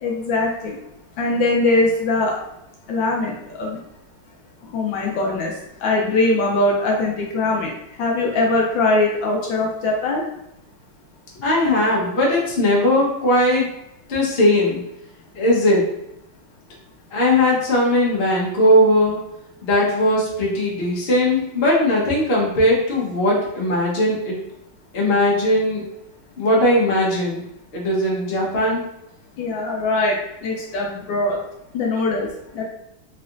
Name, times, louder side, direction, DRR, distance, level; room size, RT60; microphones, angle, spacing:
voice 1, 0.0-0.8 1.2-2.3 2.9-3.8 4.7-5.5 5.8-7.7 8.0-10.2 29.4-30.1 30.4-31.4 31.7-32.3 32.5-32.6, left 2 dB, 75° left, -1 dB, 1.3 m, -21 dB
voice 2, 11.4-13.7 14.1-14.8 15.3-15.9 17.1-19.2 19.6-24.4 24.9-25.8 26.4-27.4 27.7-28.8, left 1 dB, 40° left, -4 dB, 0.9 m, -18 dB
3.8 x 3.2 x 2.5 m, 0.81 s
omnidirectional pair, 2.2 m